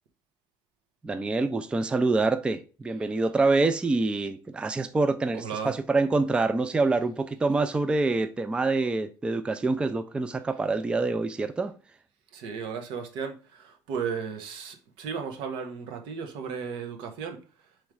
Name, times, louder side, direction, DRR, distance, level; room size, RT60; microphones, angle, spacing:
voice 1, 1.0-11.7, right 3 dB, 10° right, 0.3 m, -26 dB
voice 2, 5.3-5.7 12.3-17.4, right 6 dB, 85° right, 1.0 m, -35 dB
3.7 x 3.1 x 4.6 m
cardioid pair, 135°, 8 cm